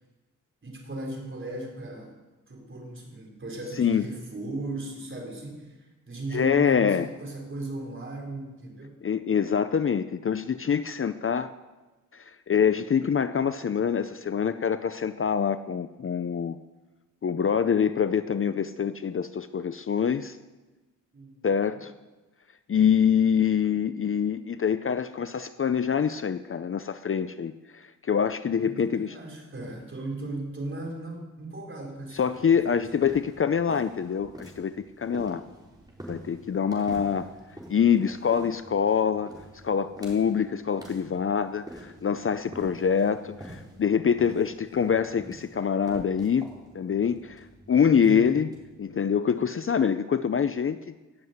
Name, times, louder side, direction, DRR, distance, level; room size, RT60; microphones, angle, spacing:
voice 1, 0.6-2.1 2.5-9.0 21.1-21.4 21.7-21.8 28.6-33.1 48.0-48.4, right 2 dB, 35° right, 0 dB, 4.1 m, -37 dB
voice 2, 6.3-7.1 9.0-11.5 12.1-16.6 17.2-20.4 21.4-21.9 22.7-29.2 32.1-35.4 36.1-37.3 37.7-46.5 46.7-48.5 48.8-50.8, left 7 dB, 40° left, 12 dB, 0.5 m, -25 dB
sound 1, 32.1-49.6, right 1 dB, 10° right, 4.0 m, -47 dB
17.5 x 7.5 x 8.0 m, 1.2 s
wide cardioid pair, 105°, 33 cm